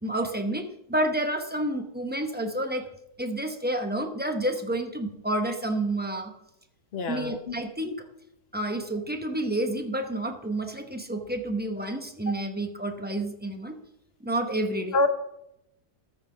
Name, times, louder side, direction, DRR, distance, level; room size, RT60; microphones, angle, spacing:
voice 1, 0.0-2.8 3.2-6.3 7.1-7.9 8.5-13.8 14.2-15.0, right 1 dB, 15° right, 5 dB, 0.3 m, -29 dB
voice 2, 6.9-7.5 14.9-15.1, left 2 dB, 45° left, 8 dB, 1.0 m, -26 dB
14.0 x 6.1 x 4.9 m, 0.81 s
omnidirectional pair, 1.8 m